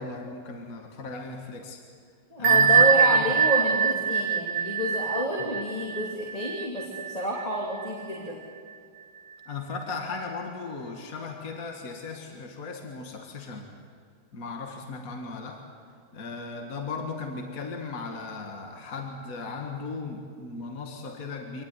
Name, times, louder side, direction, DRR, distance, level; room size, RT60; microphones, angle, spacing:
voice 1, 0.0-1.8 2.4-3.2 5.4-5.5 9.5-13.7 14.3-15.7 16.1-21.6, left 4 dB, 50° left, 3 dB, 2.3 m, -37 dB
voice 2, 2.3-8.4, equal, 20° left, -2 dB, 2.9 m, -29 dB
Bell, 2.4-7.9, right 6 dB, 70° right, 1.5 m, -23 dB
25.5 x 19.0 x 9.7 m, 2.2 s
omnidirectional pair, 1.9 m